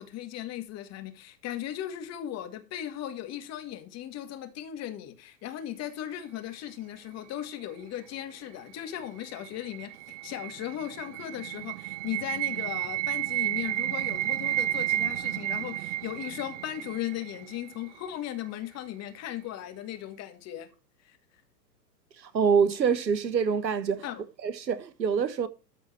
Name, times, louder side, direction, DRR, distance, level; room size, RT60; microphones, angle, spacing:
voice 1, 0.0-20.7 21.0-21.2 24.0-24.2, left 12 dB, 30° left, 2.1 m, -37 dB
sound 1, 9.0-18.0, right 15 dB, 50° right, 0.6 m, -32 dB
voice 2, 22.2-24.1 24.4-25.5, right 6 dB, 90° right, 1.4 m, -25 dB
13.5 x 4.4 x 6.8 m
hypercardioid pair, 115°, 50 cm